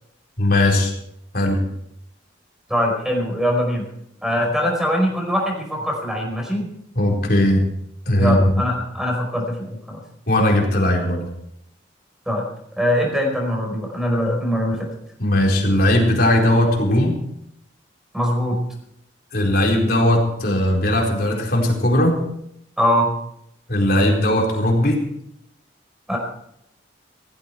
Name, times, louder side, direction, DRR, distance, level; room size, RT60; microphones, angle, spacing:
voice 1, 0.4-0.9 1.3-1.6 7.0-7.6 8.1-8.4 10.3-11.2 15.2-17.1 19.3-22.2 23.7-25.0, left 1 dB, 50° left, 0 dB, 4.3 m, -18 dB
voice 2, 2.7-3.8 4.2-6.7 8.2-10.0 12.3-12.5 12.8-14.9 18.1-18.6 22.8-23.1 26.1-26.2, equal, 5° right, 1 dB, 4.8 m, -22 dB
17.0 x 15.0 x 4.6 m, 0.76 s
head